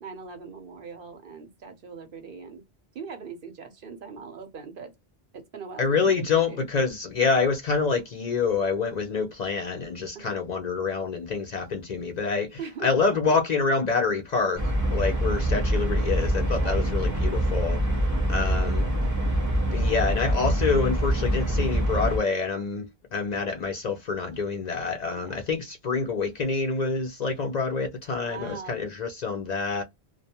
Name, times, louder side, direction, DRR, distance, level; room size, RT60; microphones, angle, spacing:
voice 1, 0.0-2.6 2.9-4.9 5.3-6.7 10.1-10.4 12.6-12.9 13.2-13.4 16.6-16.9 25.1-25.4 28.1-28.8, right 5 dB, 60° right, 0.9 m, -41 dB
voice 2, 5.8-14.6 14.9-17.8 18.3-18.9 19.7-29.8, left 4 dB, 55° left, 0.5 m, -27 dB
sound 1, 14.6-22.2, right 1 dB, 20° right, 0.6 m, -25 dB
2.2 x 2.1 x 2.8 m
omnidirectional pair, 1.0 m